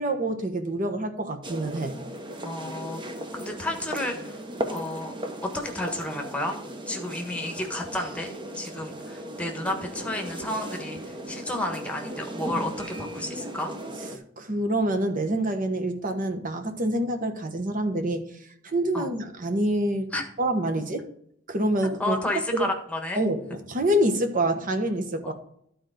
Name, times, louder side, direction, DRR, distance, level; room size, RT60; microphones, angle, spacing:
voice 1, 0.0-1.9 14.4-18.3 18.6-20.1 20.4-21.1 21.5-22.2 22.5-22.7 23.2-25.3, right 1 dB, 45° right, 1.2 m, -26 dB
sound 1, 1.4-14.2, right 1 dB, 25° right, 1.0 m, -37 dB
voice 2, 2.3-3.0 3.3-4.3 4.7-5.1 5.4-6.6 6.9-13.7 18.9-19.1 20.1-20.2 21.8-23.2 25.2-25.3, left 1 dB, 5° left, 1.4 m, -31 dB
11.5 x 4.5 x 5.1 m
head